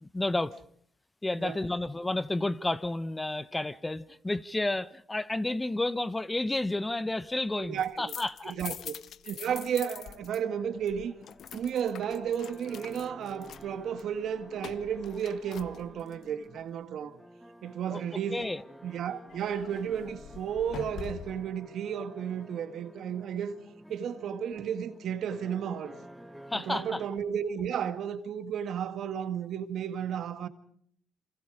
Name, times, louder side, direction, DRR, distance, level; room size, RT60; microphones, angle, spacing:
voice 1, 0.0-0.6 1.2-8.6 17.9-18.0 18.3-18.6 26.5-27.0, left 2 dB, 15° left, 0.9 m, -31 dB
sound 1, 7.6-10.4 10.7-16.2 19.3-21.5, left 9 dB, 65° left, 0.9 m, -45 dB
voice 2, 7.6-8.1 8.4-8.9 9.2-11.1 11.5-17.2 17.6-18.4 18.8-23.6 23.9-26.0 26.5-30.5, right 8 dB, 70° right, 2.0 m, -33 dB
sound 2, 9.9-27.1, right 1 dB, ahead, 1.8 m, -51 dB
28.0 x 25.5 x 5.0 m
cardioid pair, 90°, 0 cm